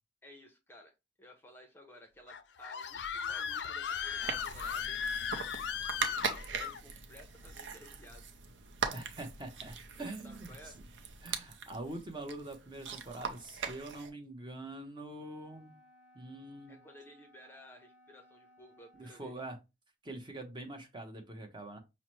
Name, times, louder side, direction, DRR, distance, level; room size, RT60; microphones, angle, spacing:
voice 1, 0.2-0.9 1.2-5.0 6.0-8.3 10.2-10.8 16.7-19.3, left 1 dB, 10° left, 3 dB, 0.6 m, -56 dB
Screaming, 2.3-6.8, left 7 dB, 65° left, 0.4 m, -37 dB
sound 1, 4.2-14.1, right 6 dB, 80° right, 0.5 m, -41 dB
voice 2, 8.9-10.7 11.2-15.8 16.1-16.8 18.9-19.6 20.0-21.8, right 2 dB, 25° right, 4 dB, 0.8 m, -44 dB
Wind instrument woodwind instrument, 15.2-19.5, left 1 dB, 5° right, 1.1 m, -63 dB
5.6 x 2.1 x 3.0 m, 0.24 s
head